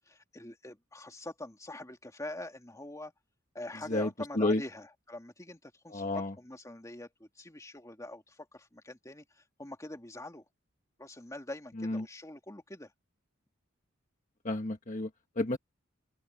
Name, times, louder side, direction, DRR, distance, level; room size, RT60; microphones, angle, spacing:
voice 1, 0.1-3.1 3.5-9.2 9.6-10.4 11.0-12.9, left 1 dB, 15° left, 2.2 m, -44 dB
voice 2, 5.9-6.3 11.8-12.1 14.4-15.1 15.4-15.6, left 2 dB, 40° left, 1.4 m, -30 dB
open air
head